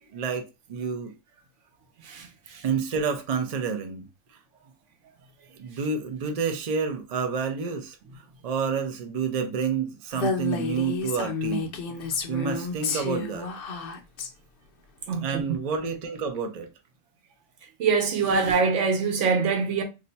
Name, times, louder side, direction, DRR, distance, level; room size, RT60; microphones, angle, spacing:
voice 1, 0.1-1.1 2.6-4.1 5.5-8.0 8.4-11.8 12.3-13.5 15.2-16.7, right 6 dB, 50° right, 0.4 m, -29 dB
Female speech woman speaking, 10.1-14.3, left 5 dB, 60° left, 0.6 m, -30 dB
voice 2, 15.1-15.4 17.8-19.8, right 5 dB, 70° right, 1.0 m, -23 dB
2.6 x 2.2 x 3.9 m
omnidirectional pair, 1.4 m